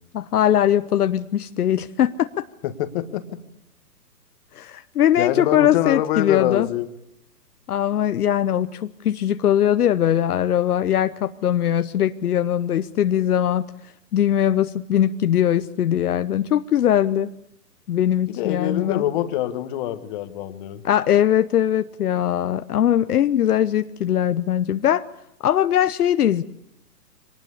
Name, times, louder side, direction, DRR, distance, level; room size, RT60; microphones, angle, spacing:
voice 1, 0.1-2.4 4.5-6.7 7.7-13.6 14.1-17.3 17.9-19.0 20.8-25.0 25.4-26.4, left 10 dB, 65° left, 10 dB, 0.9 m, -20 dB
voice 2, 2.6-3.4 5.2-6.9 18.3-20.8, left 13 dB, 30° left, 9 dB, 1.5 m, -25 dB
24.5 x 19.0 x 8.4 m, 0.81 s
hypercardioid pair, 145°, 49 cm